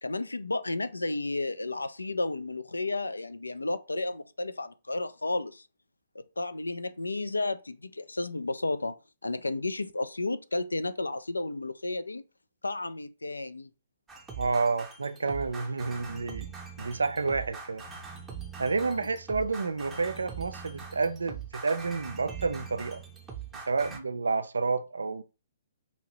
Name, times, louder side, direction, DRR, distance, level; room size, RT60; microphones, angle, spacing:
voice 1, 0.0-5.6 6.2-8.9 9.2-12.2 12.6-13.7 18.8-19.1, left 2 dB, 75° left, 0.3 m, -32 dB
sound 1, 14.1-24.0, right 6 dB, 10° right, 0.7 m, -42 dB
voice 2, 14.4-17.9 18.6-23.0 23.7-25.2, right 4 dB, 65° right, 0.4 m, -30 dB
2.8 x 2.7 x 3.0 m
figure-of-eight pair, 125°, 0 cm